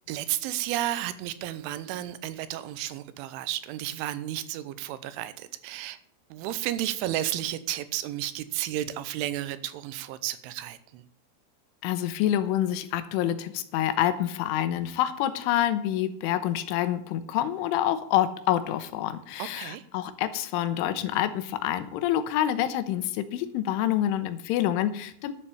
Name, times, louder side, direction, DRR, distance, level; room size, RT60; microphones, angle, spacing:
voice 1, 0.1-6.0 6.3-11.0 19.4-19.8, right 13 dB, 90° right, 13 dB, 3.3 m, -32 dB
voice 2, 11.8-25.3, left 12 dB, 85° left, 12 dB, 3.4 m, -27 dB
11.5 x 7.5 x 7.0 m, 0.67 s
omnidirectional pair, 5.4 m